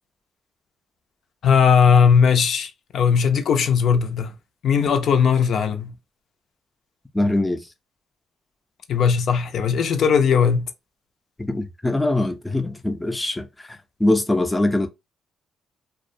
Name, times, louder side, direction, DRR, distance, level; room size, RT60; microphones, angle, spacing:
voice 1, 1.4-4.3 4.6-5.9 8.9-10.7, left 6 dB, 65° left, 0.5 m, -18 dB
voice 2, 7.1-7.6 11.4-14.9, left 2 dB, 10° left, 0.5 m, -23 dB
2.3 x 2.1 x 2.6 m
cardioid pair, 90°, 0 cm